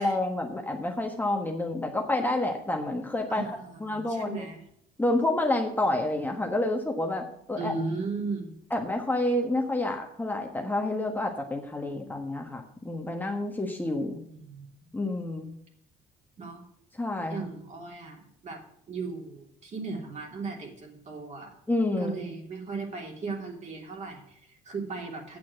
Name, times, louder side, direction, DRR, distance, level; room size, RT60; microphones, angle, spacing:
voice 1, 0.0-3.4 3.8-4.4 5.0-7.7 8.7-14.2 14.9-15.5 17.0-17.4 21.7-22.1, left 1 dB, 10° left, 2 dB, 1.3 m, -29 dB
voice 2, 3.3-4.6 7.6-8.6 14.4-14.6 16.4-16.6 17.3-18.6 18.9-21.5 22.0-25.4, right 3 dB, 45° right, 1 dB, 3.1 m, -36 dB
8.8 x 7.2 x 7.7 m, 0.70 s
cardioid pair, 110°, 17 cm